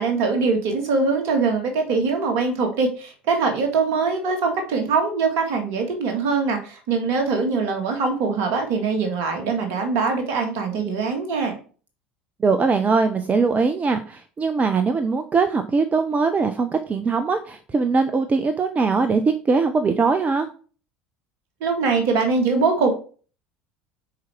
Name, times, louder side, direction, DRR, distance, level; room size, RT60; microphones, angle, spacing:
voice 1, 0.0-11.5 21.6-22.9, right 4 dB, 50° right, 4 dB, 2.1 m, -22 dB
voice 2, 12.4-20.5, right 4 dB, 25° right, 9 dB, 0.8 m, -21 dB
7.3 x 4.8 x 4.5 m, 0.40 s
figure-of-eight pair, 70°, 6 cm